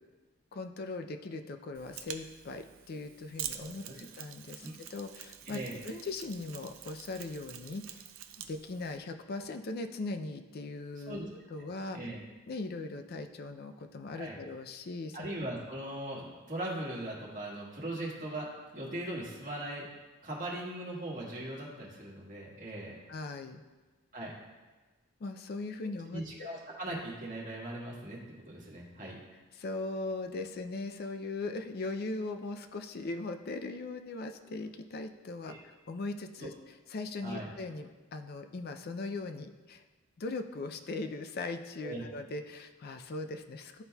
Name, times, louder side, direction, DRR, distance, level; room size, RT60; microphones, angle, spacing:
voice 1, 0.5-8.0 8.4-11.2 11.5-12.0 12.5-15.3 23.1-23.6 25.2-26.2 29.5-39.8 40.2-43.8, left 3 dB, 45° left, 7 dB, 0.4 m, -39 dB
Mechanisms, 1.7-9.0, right 10 dB, 65° right, 0.5 m, -46 dB
voice 2, 3.6-3.9 4.6-4.7 5.5-5.8 11.1-11.3 11.9-12.2 14.2-14.4 15.1-18.5 18.7-19.8 20.2-23.0 24.1-24.3 26.1-28.2 28.5-29.2 35.5-35.6 36.4-36.5 37.2-37.5 41.8-42.0, right 1 dB, 35° right, -4 dB, 1.5 m, -39 dB
12.0 x 4.1 x 2.3 m, 1.3 s
head